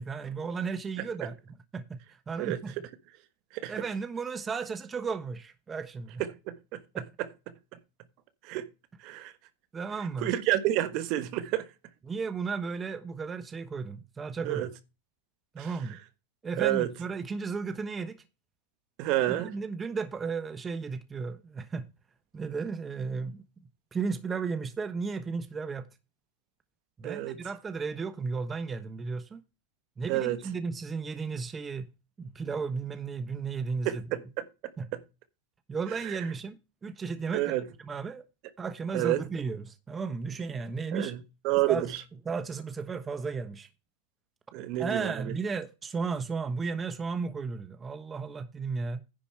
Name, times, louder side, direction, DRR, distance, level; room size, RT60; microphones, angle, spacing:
voice 1, 0.0-1.3 1.7-2.0 2.3-2.7 3.7-6.2 6.9-7.0 9.7-10.3 12.1-14.7 15.5-16.0 16.4-18.2 19.3-21.9 22.3-23.4 23.9-25.9 27.0-29.4 30.0-31.9 32.2-34.2 34.8-34.9 35.7-36.6 36.8-38.2 38.6-41.1 41.7-41.9 42.2-43.7 44.8-49.0, right 5 dB, 20° right, 1.1 m, -34 dB
voice 2, 10.2-11.6 14.4-14.7 15.6-15.7 16.6-16.9 19.0-19.5 27.0-27.3 30.1-30.4 33.8-34.4 34.9-35.0 37.3-37.6 38.9-39.2 40.9-41.2 41.4-41.8 44.5-45.3, right 14 dB, 50° right, 1.3 m, -28 dB
10.5 x 5.1 x 5.7 m
hypercardioid pair, 120°, 0 cm